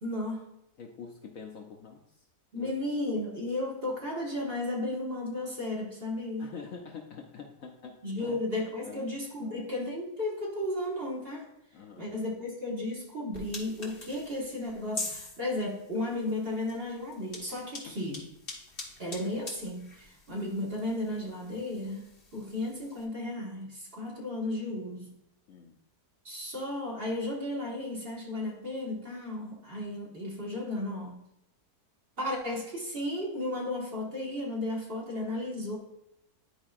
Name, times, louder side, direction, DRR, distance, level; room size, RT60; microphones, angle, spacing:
voice 1, 0.0-0.5 2.5-6.5 8.0-11.5 12.0-18.3 19.0-22.0 22.3-25.1 26.3-31.2 32.2-35.8, left 1 dB, 35° right, -3 dB, 1.6 m, -34 dB
voice 2, 0.8-2.3 2.5-2.7 6.4-8.4 8.8-9.6 11.7-12.2 17.9-18.0 25.5-25.8, left 6 dB, 65° left, 2 dB, 0.9 m, -46 dB
sound 1, 13.3-23.0, left 3 dB, 35° left, 1.5 m, -45 dB
11.0 x 4.8 x 2.4 m, 0.79 s
omnidirectional pair, 1.8 m